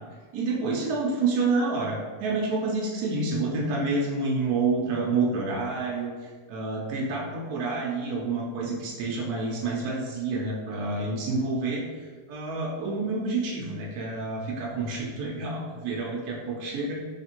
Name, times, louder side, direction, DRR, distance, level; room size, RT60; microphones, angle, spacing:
voice 1, 0.3-17.0, right 3 dB, 70° right, -3 dB, 1.1 m, -28 dB
3.4 x 3.2 x 2.9 m, 1.5 s
omnidirectional pair, 1.8 m